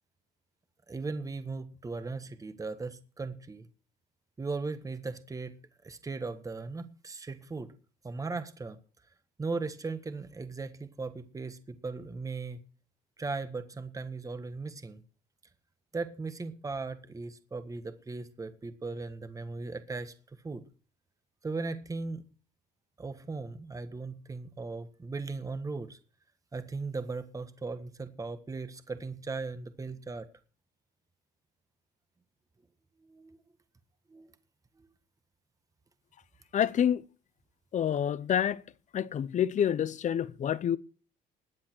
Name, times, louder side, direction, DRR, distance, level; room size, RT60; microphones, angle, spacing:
voice 1, 0.9-3.7 4.4-5.6 5.8-7.7 8.0-8.8 9.4-12.6 13.2-15.0 15.9-20.1 20.4-20.6 21.4-22.2 23.0-26.0 26.5-30.3 33.0-33.4 34.1-34.3 34.8-34.9, right 3 dB, 20° right, 1.5 m, -38 dB
voice 2, 36.5-37.0 37.7-38.6 38.9-40.8, left 9 dB, 45° left, 0.8 m, -27 dB
20.0 x 8.7 x 4.6 m
cardioid pair, 110°, 17 cm